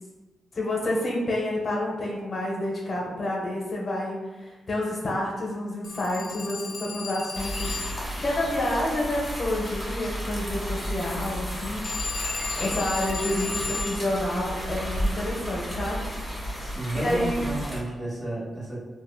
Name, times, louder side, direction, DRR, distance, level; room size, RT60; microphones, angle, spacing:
voice 1, 0.5-16.1 17.0-17.6, left 1 dB, 50° left, -3 dB, 0.7 m, -29 dB
Telephone, 5.8-8.2 11.8-14.0, left 4 dB, 65° left, 0.3 m, -34 dB
sound 1, 7.4-17.8, equal, 5° left, 1.2 m, -33 dB
voice 2, 16.6-18.8, right 1 dB, 40° right, -7 dB, 1.4 m, -32 dB
2.8 x 2.6 x 2.2 m, 1.2 s
cardioid pair, 60°, 0 cm